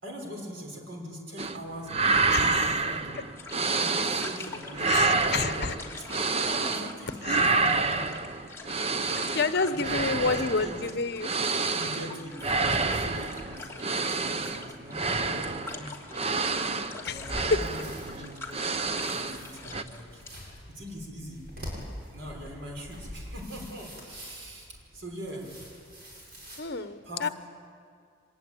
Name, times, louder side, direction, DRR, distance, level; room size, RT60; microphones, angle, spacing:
voice 1, 0.0-1.9 2.4-3.2 3.8-5.8 6.4-8.1 9.6-10.8 11.7-16.4 17.1-18.4 18.9-20.2 20.7-21.5 22.1-25.5 27.0-27.3, equal, 75° right, 0 dB, 5.5 m, -42 dB
sound 1, 1.4-1.6 1.9-4.5 4.7-7.0 7.2-19.4 19.7-19.8, right 3 dB, 30° right, 0.8 m, -28 dB
voice 2, 2.3-2.6 4.8-5.8 7.2-7.5 9.3-11.3 17.0-17.9 26.6-27.3, left 4 dB, 55° left, 11 dB, 1.1 m, -29 dB
sound 2, 3.3-20.4, left 3 dB, 15° left, 2.7 m, -45 dB
sound 3, 17.1-26.6, equal, 55° right, 7.7 m, -44 dB
25.5 x 20.5 x 9.2 m, 2.2 s
head